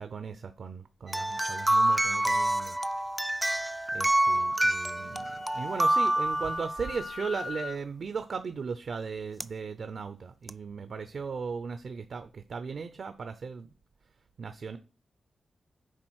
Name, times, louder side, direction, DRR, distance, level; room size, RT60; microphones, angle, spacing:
voice 1, 0.0-2.8 3.9-13.7 14.4-14.8, right 5 dB, 55° right, 0.6 m, -37 dB
sound 1, 1.1-7.1 9.4-9.5 10.5-10.6, right 1 dB, 10° right, 0.3 m, -27 dB
Wind instrument woodwind instrument, 4.9-7.8, left 5 dB, 50° left, 0.6 m, -42 dB
7.4 x 4.8 x 6.3 m
wide cardioid pair, 170°, 0 cm